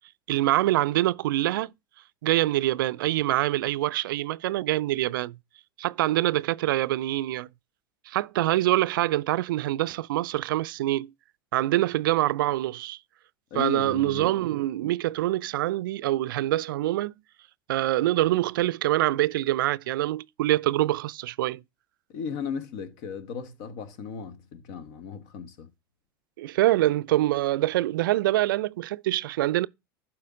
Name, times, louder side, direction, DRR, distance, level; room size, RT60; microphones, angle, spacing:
voice 1, 0.3-1.7 2.2-5.4 5.8-7.5 8.1-11.1 11.5-13.0 13.5-17.1 17.7-21.6 26.4-29.7, right 15 dB, 70° right, 0.4 m, -25 dB
voice 2, 13.5-14.3 22.1-25.7, left 6 dB, 55° left, 1.1 m, -35 dB
11.5 x 4.4 x 3.6 m
hypercardioid pair, 85°, 12 cm